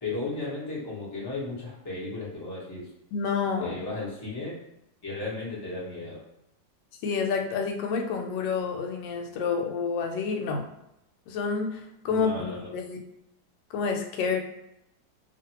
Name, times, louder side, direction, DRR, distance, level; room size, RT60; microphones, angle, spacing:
voice 1, 0.0-2.9 3.6-4.6 5.0-6.2 12.1-12.7, left 3 dB, 30° left, -7 dB, 0.4 m, -35 dB
voice 2, 3.1-3.7 7.0-10.6 11.3-13.0 13.7-14.4, left 5 dB, 75° left, 3 dB, 1.2 m, -29 dB
2.8 x 2.5 x 2.8 m, 0.83 s
omnidirectional pair, 2.1 m